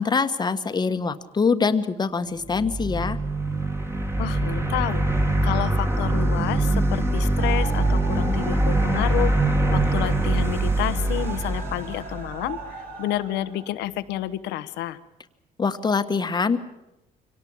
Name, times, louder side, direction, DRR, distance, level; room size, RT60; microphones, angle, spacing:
voice 1, 0.0-3.2 15.6-16.6, left 5 dB, 25° left, 10 dB, 1.3 m, -24 dB
sound 1, 2.4-12.6, right 2 dB, 15° right, 2.1 m, -23 dB
voice 2, 4.2-5.1 5.4-15.0, left 13 dB, 85° left, 14 dB, 1.1 m, -30 dB
sound 2, 7.4-13.8, right 4 dB, 55° right, 4.2 m, -40 dB
24.0 x 18.0 x 8.7 m, 0.94 s
cardioid pair, 110°, 17 cm